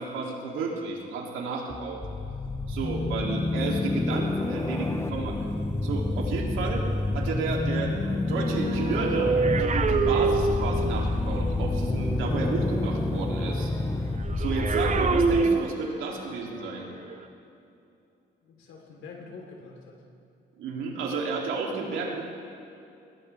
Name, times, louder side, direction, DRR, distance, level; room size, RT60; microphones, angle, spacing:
voice 1, 0.0-2.0 2.7-5.4 5.8-6.9 7.1-7.9 8.2-13.7 14.4-16.9 20.6-22.2, right 4 dB, 85° right, -1 dB, 2.9 m, -32 dB
sound 1, 1.7-15.4, left 2 dB, 15° left, 0.9 m, -28 dB
voice 2, 2.8-3.4 18.4-20.1, left 4 dB, 85° left, 0 dB, 3.5 m, -46 dB
sound 2, 8.3-11.1 14.2-16.2 17.0-17.2, right 5 dB, 35° right, 0.8 m, -26 dB
sound 3, 11.7-17.2, left 2 dB, 35° left, 2.6 m, -51 dB
21.5 x 17.0 x 3.4 m, 2.7 s
cardioid pair, 90°, 20 cm